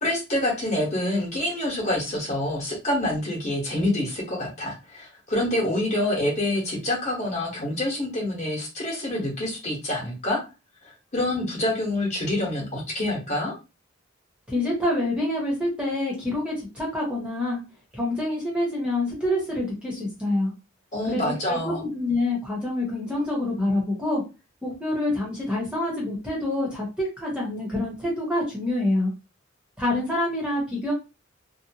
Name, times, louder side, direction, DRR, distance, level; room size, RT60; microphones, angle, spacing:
voice 1, 0.0-10.4 10.8-13.5 20.9-21.8, left 1 dB, 35° left, -3 dB, 1.1 m, -27 dB
voice 2, 14.5-17.6 17.9-20.5 21.1-24.2 24.6-29.1 29.8-30.9, left 1 dB, 5° right, -4 dB, 0.9 m, -26 dB
2.8 x 2.0 x 2.8 m, 0.28 s
head